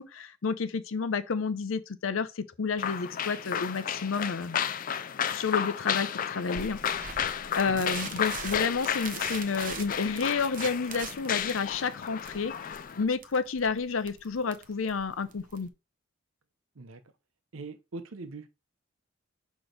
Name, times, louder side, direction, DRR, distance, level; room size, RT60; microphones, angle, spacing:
voice 1, 0.0-4.6 5.3-12.5 13.0-15.7, left 5 dB, 80° left, 0.6 m, -30 dB
sound 1, 2.8-13.0, left 8 dB, 45° left, 0.4 m, -33 dB
sound 2, 6.5-15.7, right 6 dB, 45° right, 0.7 m, -43 dB
voice 2, 17.5-18.5, right 3 dB, 80° right, 0.8 m, -42 dB
6.1 x 3.1 x 5.1 m
head